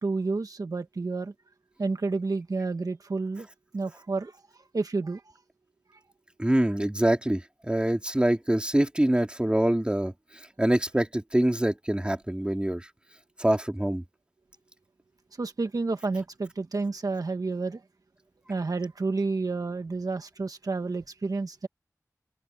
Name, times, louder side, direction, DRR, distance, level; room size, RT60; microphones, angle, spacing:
voice 1, 0.0-1.3 1.8-3.5 3.7-4.4 4.7-5.2 15.4-17.8 18.5-21.7, right 3 dB, 70° right, 1.3 m, -30 dB
voice 2, 6.4-10.1 10.6-12.9 13.4-14.0, right 1 dB, 15° right, 3.0 m, -25 dB
open air
wide cardioid pair, 70°, 6 cm